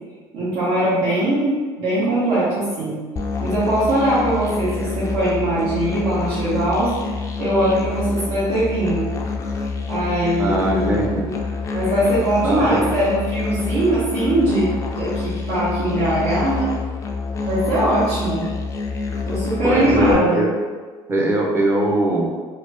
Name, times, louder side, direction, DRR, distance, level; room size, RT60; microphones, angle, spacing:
voice 1, 0.3-3.0 3.4-6.9 7.4-9.0 9.9-11.4 11.7-14.7 14.9-16.7 17.4-18.5 19.3-20.4 21.8-21.9, right 1 dB, 80° right, -11 dB, 1.2 m, -21 dB
Musical instrument, 3.2-20.1, left 4 dB, 30° left, 0.3 m, -27 dB
voice 2, 10.4-11.2 12.4-12.6 19.6-20.5 21.1-22.3, right 1 dB, 20° right, -1 dB, 0.6 m, -20 dB
2.9 x 2.7 x 3.3 m, 1.5 s
cardioid pair, 140°, 11 cm